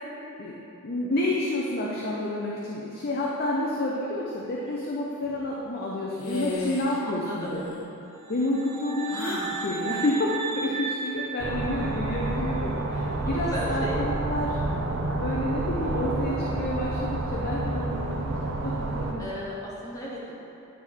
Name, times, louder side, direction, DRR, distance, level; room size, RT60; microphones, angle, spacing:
voice 1, 0.8-7.6 8.3-14.6 15.2-19.2, left 1 dB, 45° left, -4 dB, 0.6 m, -29 dB
sound 1, 6.2-7.0 7.3-7.9 9.1-9.6, left 2 dB, 80° left, 1.1 m, -33 dB
voice 2, 7.0-7.5 12.9-14.0 19.2-20.3, equal, 15° left, -7 dB, 1.0 m, -36 dB
sound 2, 8.2-12.2, right 5 dB, 10° right, 0.7 m, -35 dB
sound 3, 11.4-19.1, right 2 dB, 60° right, 0.6 m, -29 dB
9.7 x 3.5 x 4.6 m, 2.9 s
head